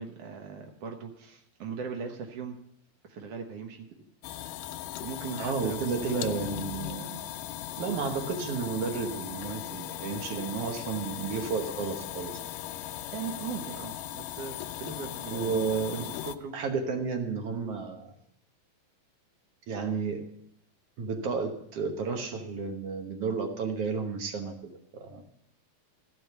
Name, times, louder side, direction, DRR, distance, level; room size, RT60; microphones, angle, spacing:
voice 1, 0.0-2.6 3.1-3.9 5.0-6.4 13.1-16.5, right 5 dB, 85° right, 3 dB, 1.3 m, -39 dB
sound 1, 4.2-16.4, left 13 dB, 85° left, 1.9 m, -38 dB
voice 2, 5.3-7.2 7.8-12.4 15.3-16.1 16.5-18.1 19.7-20.2 21.0-25.2, right 5 dB, 70° right, 5 dB, 1.4 m, -32 dB
15.0 x 5.3 x 7.9 m, 0.73 s
omnidirectional pair, 4.4 m